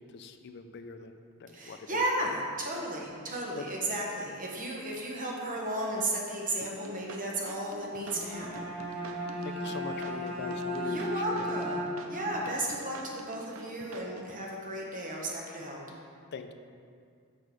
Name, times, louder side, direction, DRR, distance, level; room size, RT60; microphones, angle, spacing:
voice 1, 0.0-2.0 3.6-3.7 9.4-11.5 16.3-16.5, left 5 dB, 50° left, 7 dB, 0.4 m, -42 dB
voice 2, 1.5-8.7 10.8-11.8 12.1-15.8, right 1 dB, 40° right, -2 dB, 1.2 m, -34 dB
sound 1, 6.6-14.4, right 2 dB, 70° right, 0.6 m, -47 dB
Bowed string instrument, 8.0-12.3, equal, 90° right, 1.9 m, -35 dB
6.3 x 5.4 x 4.8 m, 2.2 s
head